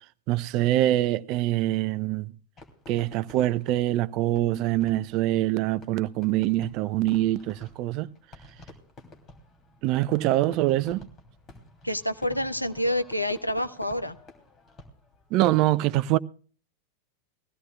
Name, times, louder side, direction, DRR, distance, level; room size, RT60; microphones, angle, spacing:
voice 1, 0.3-2.3 2.9-8.1 9.8-11.1 15.3-16.2, right 15 dB, 40° right, 0.5 m, -24 dB
Fireworks, 2.6-15.3, left 1 dB, 25° left, 3.0 m, -50 dB
voice 2, 11.8-14.2, left 1 dB, 90° left, 0.9 m, -28 dB
21.5 x 16.0 x 2.3 m
figure-of-eight pair, 90°, 0 cm